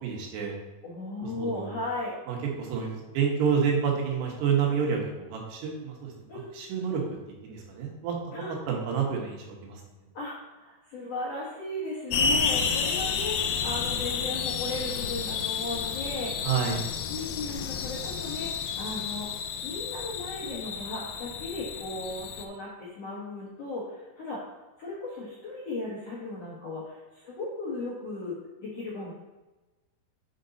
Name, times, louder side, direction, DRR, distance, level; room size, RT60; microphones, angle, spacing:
voice 1, 0.0-0.6 1.4-1.7 2.3-5.0 5.3-6.1 6.6-7.0 7.4-8.2 8.7-9.8 16.4-16.8, right 7 dB, 85° right, -1 dB, 3.5 m, -28 dB
voice 2, 0.8-2.1 6.3-6.5 8.3-8.5 10.1-16.3 17.1-19.3 19.6-24.4 24.8-29.1, left 2 dB, 60° left, -6 dB, 1.7 m, -36 dB
sound 1, 12.1-22.5, left 6 dB, 80° left, 2.3 m, -31 dB
7.5 x 5.2 x 4.0 m, 1.1 s
omnidirectional pair, 4.7 m